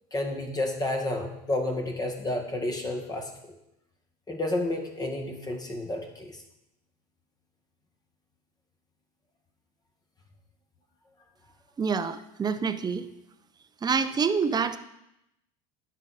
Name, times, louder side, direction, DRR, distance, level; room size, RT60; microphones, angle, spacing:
voice 1, 0.1-3.5 4.3-6.4, left 1 dB, 20° left, 3 dB, 1.8 m, -31 dB
voice 2, 11.8-13.1 13.8-14.8, right 5 dB, 20° right, 11 dB, 0.7 m, -27 dB
10.5 x 6.4 x 4.2 m, 0.85 s
hypercardioid pair, 95°, 18 cm